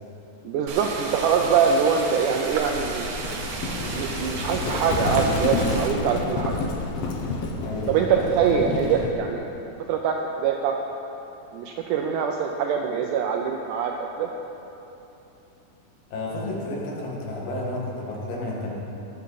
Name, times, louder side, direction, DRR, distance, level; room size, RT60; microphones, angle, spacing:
voice 1, 0.4-3.1 3.9-6.6 7.9-9.4 9.9-10.8 11.5-14.3, right 6 dB, 85° right, 2 dB, 1.8 m, -24 dB
sound 1, 0.7-5.9, right 3 dB, 60° right, 1.9 m, -33 dB
Livestock farm animals working animals, 2.5-9.2, left 3 dB, 85° left, 1.3 m, -29 dB
voice 2, 7.6-8.4 16.1-18.7, left 2 dB, 70° left, -4 dB, 3.6 m, -31 dB
19.5 x 8.2 x 4.1 m, 3.0 s
omnidirectional pair, 4.3 m